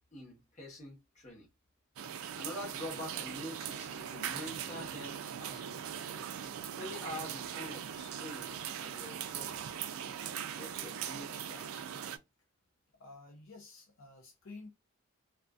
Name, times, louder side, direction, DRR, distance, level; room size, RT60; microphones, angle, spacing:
voice 1, 0.1-1.5 2.2-6.0 6.8-9.7 10.5-11.9, left 1 dB, 35° left, 1.0 m, -46 dB
sound 1, 2.0-12.2, right 9 dB, 80° right, 0.3 m, -40 dB
voice 2, 13.0-14.7, left 3 dB, 70° left, 0.6 m, -51 dB
2.5 x 2.3 x 2.3 m
head